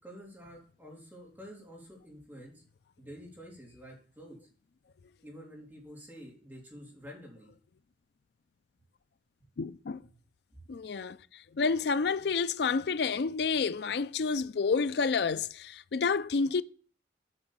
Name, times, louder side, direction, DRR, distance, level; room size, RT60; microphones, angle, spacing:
voice 1, 0.0-2.6 3.0-4.4 5.2-7.5, equal, 10° right, 3.4 m, -49 dB
voice 2, 9.6-10.0 10.7-16.6, left 5 dB, 60° left, 0.4 m, -29 dB
8.9 x 4.9 x 7.3 m
head